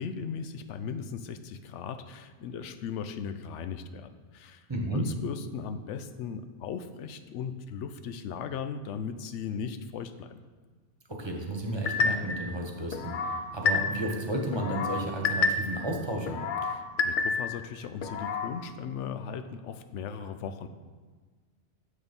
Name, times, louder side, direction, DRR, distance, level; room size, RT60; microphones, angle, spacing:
voice 1, 0.0-10.4 16.6-20.7, left 6 dB, 90° left, 10 dB, 0.9 m, -38 dB
voice 2, 4.7-5.1 11.1-16.4, right 1 dB, 25° right, 0 dB, 1.1 m, -32 dB
sound 1, 11.9-12.4 12.9-14.2 14.5-15.9 16.3-17.6 18.0-18.5, left 4 dB, 55° left, 0.6 m, -29 dB
7.1 x 6.6 x 5.4 m, 1.5 s
omnidirectional pair, 1.2 m